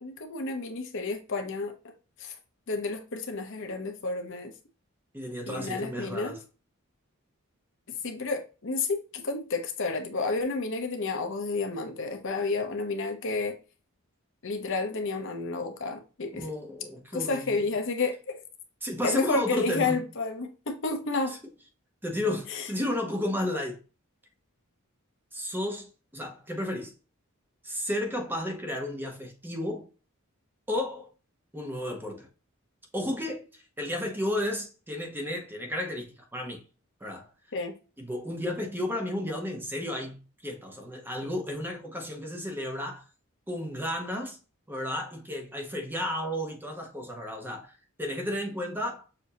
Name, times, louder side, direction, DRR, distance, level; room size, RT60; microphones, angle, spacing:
voice 1, 0.0-1.7 2.2-2.3 2.7-4.5 5.5-6.4 8.0-13.6 14.4-16.4 17.1-18.4 19.0-21.4 22.5-22.7 37.5-37.7, left 3 dB, 60° left, 0.8 m, -31 dB
voice 2, 5.1-6.4 16.4-17.6 18.8-20.0 22.0-23.8 25.3-26.9 27.6-29.9 30.7-31.1 31.5-32.3 32.9-36.6 37.0-37.3 38.0-43.0 43.5-44.4 44.7-47.7 48.0-49.0, left 1 dB, 10° right, 0.9 m, -33 dB
6.7 x 2.7 x 2.8 m
head